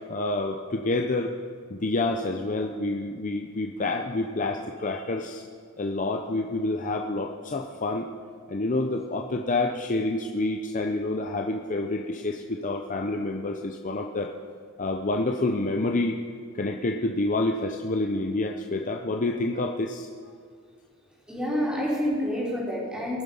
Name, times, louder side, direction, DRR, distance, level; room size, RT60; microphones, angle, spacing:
voice 1, 0.1-1.3 1.7-5.4 5.8-8.1 8.5-14.3 14.8-16.2 16.5-20.1, left 2 dB, 35° left, 2 dB, 0.7 m, -28 dB
voice 2, 21.3-23.2, equal, 5° right, -5 dB, 3.8 m, -28 dB
20.5 x 7.5 x 5.5 m, 2.1 s
head